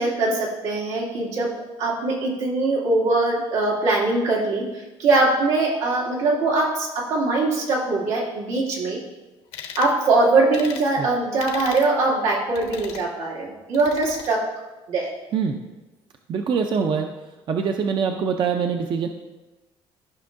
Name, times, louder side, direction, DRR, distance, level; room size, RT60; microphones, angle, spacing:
voice 1, 0.0-1.5 1.8-9.0 9.8-14.5 14.9-15.1, right 2 dB, 85° right, -4 dB, 2.3 m, -22 dB
sound 1, 9.5-9.9 10.5-10.9 11.4-11.9 12.5-13.1 13.7-14.3, left 7 dB, 75° left, 1.1 m, -37 dB
voice 2, 15.3-15.6 16.3-17.1 17.5-19.1, right 6 dB, 45° right, 4 dB, 0.6 m, -24 dB
14.0 x 5.5 x 2.6 m, 1.1 s
cardioid pair, 125°, 11 cm